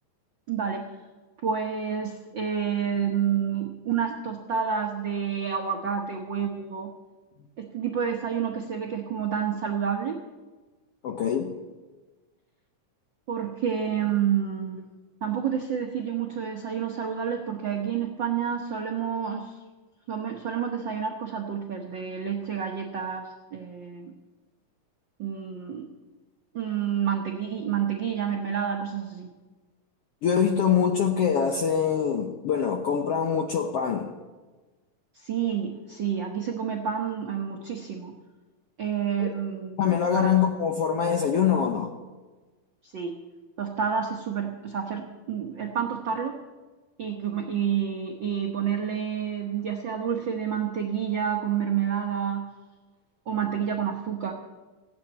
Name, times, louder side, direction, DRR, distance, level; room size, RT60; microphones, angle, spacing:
voice 1, 0.5-0.9 1.4-6.9 7.6-10.2 13.3-14.8 15.2-19.6 20.1-24.1 25.2-25.9 26.5-29.3 35.1-38.2 38.8-40.3 42.8-43.1 43.6-46.4 47.0-52.5 53.3-54.3, right 8 dB, 85° right, 2 dB, 1.0 m, -29 dB
voice 2, 11.0-11.6 30.2-34.1 39.2-39.3 39.8-42.0, left 7 dB, 75° left, 4 dB, 1.4 m, -24 dB
16.0 x 8.4 x 8.8 m, 1.3 s
omnidirectional pair, 3.9 m